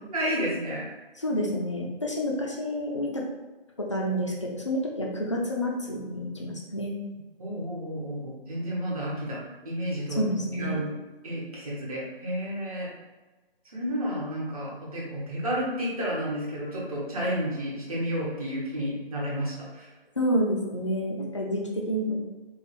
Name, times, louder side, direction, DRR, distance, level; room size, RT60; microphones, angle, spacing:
voice 1, 0.1-0.9 7.4-10.2 10.5-10.9 11.2-12.9 13.7-19.9, equal, 35° right, -6 dB, 1.2 m, -31 dB
voice 2, 1.2-3.2 3.8-6.9 10.1-10.8 20.2-22.1, equal, 30° left, -1 dB, 0.5 m, -29 dB
4.4 x 2.2 x 3.3 m, 1.2 s
figure-of-eight pair, 165°, 30 cm